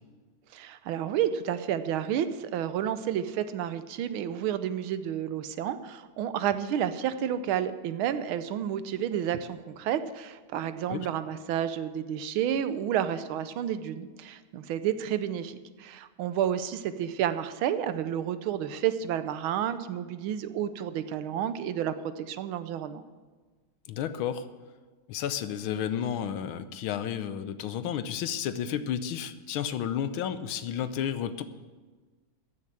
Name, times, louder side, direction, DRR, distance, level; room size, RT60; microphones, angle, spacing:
voice 1, 0.5-23.0, right 10 dB, 80° right, 12 dB, 1.5 m, -30 dB
voice 2, 23.9-24.5 25.1-31.4, left 9 dB, 75° left, 12 dB, 1.5 m, -32 dB
14.0 x 6.6 x 8.7 m, 1.4 s
omnidirectional pair, 2.3 m